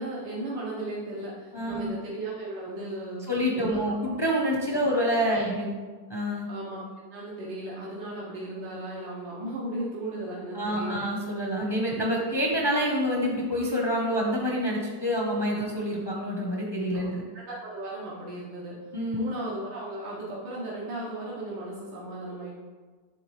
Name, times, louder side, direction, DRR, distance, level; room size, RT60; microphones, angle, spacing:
voice 1, 0.0-3.3 3.5-3.8 4.7-4.8 5.3-5.5 6.5-11.0 15.6-15.7 16.9-17.1 17.3-18.8 19.1-22.5, right 1 dB, 90° right, -6 dB, 1.7 m, -36 dB
voice 2, 1.5-1.9 3.3-5.8 6.1-6.5 10.5-17.2 18.9-19.3, equal, 30° left, -2 dB, 0.4 m, -27 dB
9.5 x 3.7 x 3.2 m, 1.4 s
omnidirectional pair, 2.0 m